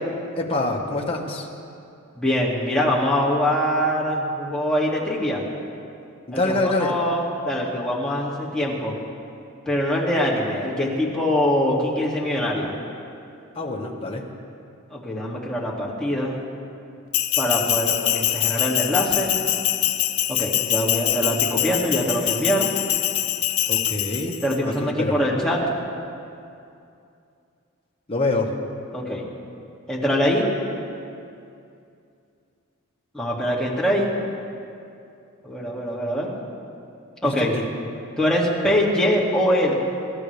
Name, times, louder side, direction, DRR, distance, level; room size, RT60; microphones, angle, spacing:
voice 1, 0.4-1.5 6.3-6.9 13.5-14.2 23.7-24.4 24.6-24.7 25.0-25.1 28.1-28.5 37.2-37.6, left 2 dB, 25° left, 0 dB, 1.5 m, -25 dB
voice 2, 2.1-5.4 6.3-9.0 9.7-12.8 14.9-16.4 17.4-19.4 20.3-22.7 24.4-25.6 28.9-29.2 29.9-30.5 33.1-34.1 35.4-36.4 37.2-37.5 38.2-39.7, equal, 5° left, -5 dB, 2.4 m, -23 dB
Bell, 17.1-24.6, left 13 dB, 90° left, 0.8 m, -24 dB
27.0 x 14.0 x 3.4 m, 2.6 s
head